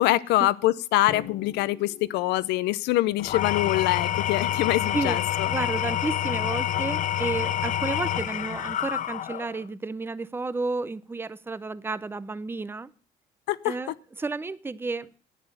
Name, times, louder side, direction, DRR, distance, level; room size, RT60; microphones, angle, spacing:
voice 1, 0.0-5.5 13.5-13.7, left 16 dB, 90° left, 0.7 m, -24 dB
Drum, 1.1-2.8, left 10 dB, 70° left, 1.3 m, -42 dB
Engine / Tools, 3.2-9.6, left 11 dB, 50° left, 0.5 m, -27 dB
voice 2, 5.5-12.9 13.6-15.1, right 3 dB, 15° right, 0.6 m, -32 dB
11.0 x 9.1 x 6.7 m
cardioid pair, 110°, 17 cm